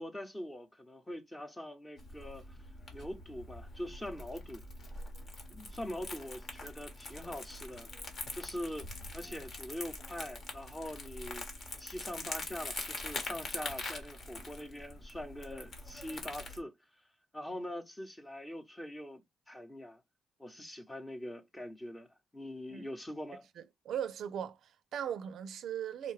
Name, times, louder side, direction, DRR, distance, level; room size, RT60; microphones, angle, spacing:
voice 1, 0.0-2.6 2.9-4.6 5.5-7.9 8.3-8.9 9.1-11.5 11.8-16.7 17.3-20.0 20.4-22.1 22.3-23.4, left 1 dB, 15° left, 0.8 m, -43 dB
Crumpling crinkling, 2.0-16.6, left 2 dB, 50° left, 1.2 m, -44 dB
voice 2, 23.6-26.1, right 9 dB, 70° right, 0.4 m, -39 dB
3.7 x 2.2 x 3.2 m
cardioid pair, 90°, 0 cm